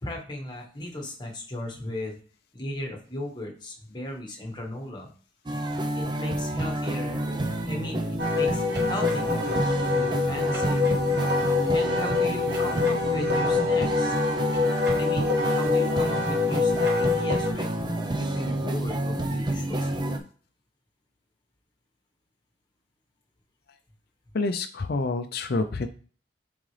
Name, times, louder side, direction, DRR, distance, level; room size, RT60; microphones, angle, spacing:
voice 1, 0.0-2.2 2.5-5.1 5.9-7.2 7.6-10.8 11.7-14.2 15.0-17.7 18.1-20.1, left 1 dB, 20° left, 1 dB, 1.5 m, -36 dB
sound 1, 5.5-20.2, right 1 dB, 25° right, 0.6 m, -29 dB
Wind instrument woodwind instrument, 8.2-17.5, left 4 dB, 55° right, 1.2 m, -25 dB
voice 2, 24.3-25.9, left 3 dB, 50° left, 7 dB, 0.5 m, -27 dB
7.4 x 3.9 x 3.3 m, 0.41 s
head